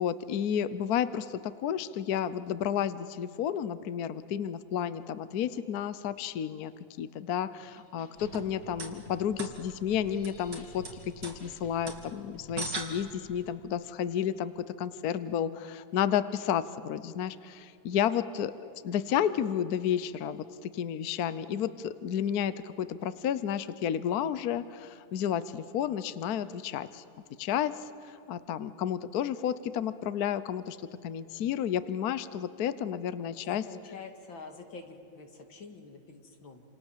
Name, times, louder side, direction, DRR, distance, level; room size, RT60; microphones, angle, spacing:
voice 1, 0.0-6.7 7.0-10.8 11.2-18.5 18.8-27.0 27.4-30.8 31.0-33.6, left 9 dB, 60° left, 14 dB, 1.2 m, -31 dB
sound 1, 7.6-13.0, left 3 dB, 35° left, 1.8 m, -53 dB
sound 2, 8.1-13.5, right 3 dB, 65° right, 3.1 m, -42 dB
voice 2, 33.2-36.6, left 4 dB, 90° left, 5 dB, 3.1 m, -46 dB
28.5 x 27.5 x 7.4 m, 2.7 s
omnidirectional pair, 2.1 m